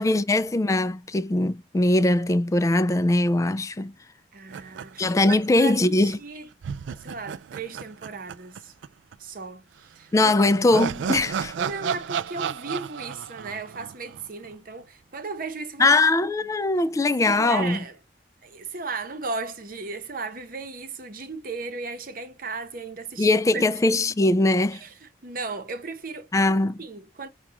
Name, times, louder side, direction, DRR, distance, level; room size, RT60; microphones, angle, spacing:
voice 1, 0.0-3.9 5.0-6.2 10.1-11.5 15.8-17.8 23.2-24.8 26.3-26.8, left 2 dB, 15° left, 0.3 m, -21 dB
voice 2, 4.3-6.5 6.9-8.7 9.2-10.3 11.6-16.0 17.0-18.0 18.4-23.6 24.7-26.3 26.8-27.3, right 4 dB, 50° right, 0.9 m, -36 dB
sound 1, 4.5-5.9 6.1-6.2 6.6-8.9 9.1-9.2 10.2-14.5, right 7 dB, 90° right, 0.3 m, -33 dB
5.9 x 2.4 x 2.9 m
head